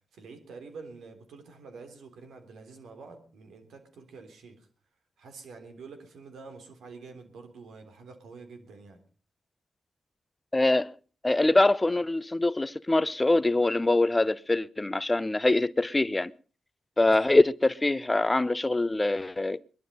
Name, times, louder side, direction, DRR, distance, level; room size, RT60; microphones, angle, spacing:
voice 1, 0.1-4.7 5.2-9.0 17.0-17.4, right 4 dB, 80° right, 3.4 m, -47 dB
voice 2, 10.5-10.9 11.2-16.3 17.0-19.6, left 2 dB, 25° left, 0.7 m, -24 dB
21.0 x 12.0 x 5.4 m
supercardioid pair, 50°, 0 cm